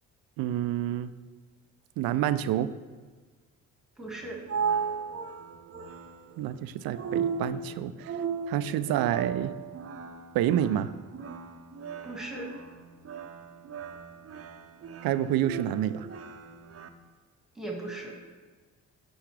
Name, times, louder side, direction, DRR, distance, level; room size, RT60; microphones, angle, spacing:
voice 1, 0.4-1.1 2.0-2.7 6.4-8.2 8.5-9.5 10.3-10.9 15.0-16.1, right 11 dB, 65° right, 14 dB, 0.5 m, -28 dB
voice 2, 4.0-4.5 12.0-12.5 17.6-18.1, right 2 dB, ahead, -2 dB, 2.0 m, -37 dB
sound 1, 4.0-16.9, right 6 dB, 35° right, 0.8 m, -36 dB
10.0 x 4.8 x 3.4 m, 1.4 s
hypercardioid pair, 50°, 39 cm